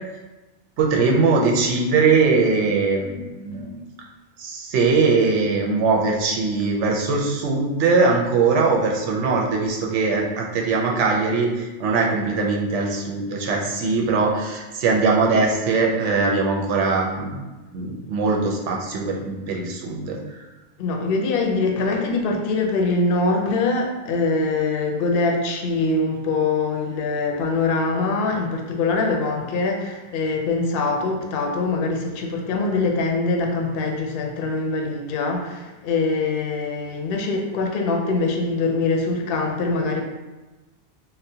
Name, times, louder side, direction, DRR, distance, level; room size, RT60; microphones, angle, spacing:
voice 1, 0.8-3.7 4.4-17.4 17.7-20.2, right 4 dB, 85° right, 0 dB, 0.9 m, -21 dB
voice 2, 20.8-40.0, left 3 dB, 60° left, 2 dB, 0.7 m, -23 dB
3.8 x 2.1 x 2.7 m, 1.1 s
omnidirectional pair, 1.2 m